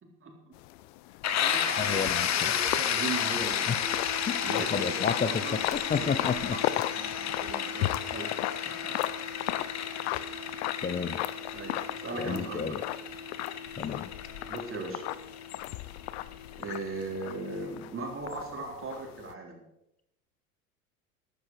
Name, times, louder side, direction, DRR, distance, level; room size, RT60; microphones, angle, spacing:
voice 1, 0.0-0.5 1.2-3.9 4.4-5.0 5.4-5.6 5.9-6.2 6.7-8.3 8.8-8.9 11.5-12.8 14.5-15.0 16.6-19.6, right 3 dB, 25° right, 1 dB, 3.9 m, -38 dB
sound 1, 0.5-19.3, left 16 dB, 55° left, 0.8 m, -37 dB
sound 2, 1.2-16.8, left 9 dB, 35° left, 1.5 m, -32 dB
voice 2, 1.8-2.5 3.7-3.8 4.3-4.4 4.7-6.6 10.8-11.2 12.2-12.8 13.8-14.1, left 6 dB, 20° left, 13 dB, 0.7 m, -31 dB
sound 3, 3.8-17.8, left 3 dB, 80° left, 2.0 m, -45 dB
13.5 x 12.0 x 4.8 m, 0.85 s
hypercardioid pair, 85°, 46 cm